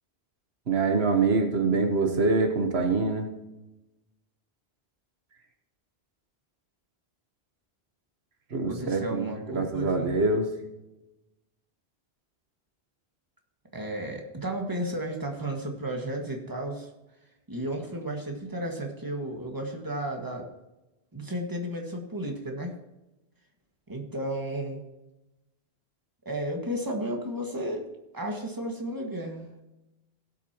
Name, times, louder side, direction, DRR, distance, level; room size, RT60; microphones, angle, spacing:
voice 1, 0.7-3.3 8.5-10.5, right 3 dB, 80° right, 4 dB, 1.5 m, -25 dB
voice 2, 8.7-10.1 13.7-16.9 17.5-20.5 21.1-22.7 23.9-24.8 26.3-27.9 28.1-29.5, right 1 dB, 20° right, 1 dB, 1.8 m, -33 dB
17.5 x 8.3 x 3.0 m, 0.99 s
omnidirectional pair, 1.1 m